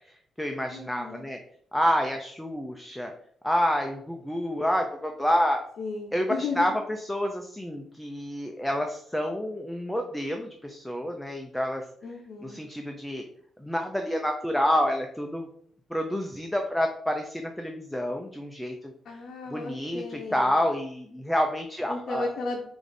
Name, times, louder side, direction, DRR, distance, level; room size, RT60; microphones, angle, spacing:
voice 1, 0.1-1.4 1.7-3.1 3.4-5.6 6.1-11.8 12.4-13.2 13.6-15.5 15.9-19.2 19.5-22.3, equal, 5° left, 3 dB, 0.4 m, -28 dB
voice 2, 0.7-1.2 5.8-6.7 12.0-12.6 19.0-20.6 21.9-22.6, left 3 dB, 55° left, 0 dB, 0.6 m, -34 dB
4.8 x 2.6 x 3.8 m, 0.64 s
cardioid pair, 155°, 0 cm